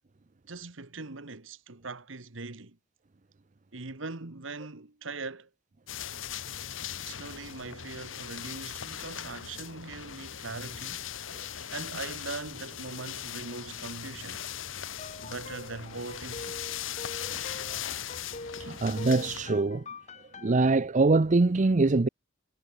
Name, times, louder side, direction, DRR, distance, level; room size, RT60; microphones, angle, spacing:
voice 1, 0.5-2.8 3.7-5.5 7.0-11.0 11.4-14.4 15.2-16.6, right 3 dB, 75° right, 1.7 m, -41 dB
sound 1, 5.9-19.5, left 9 dB, 75° left, 1.4 m, -39 dB
sound 2, 14.9-20.6, left 3 dB, 35° left, 2.0 m, -44 dB
voice 2, 18.6-19.8 20.4-22.1, right 3 dB, 40° right, 0.6 m, -23 dB
head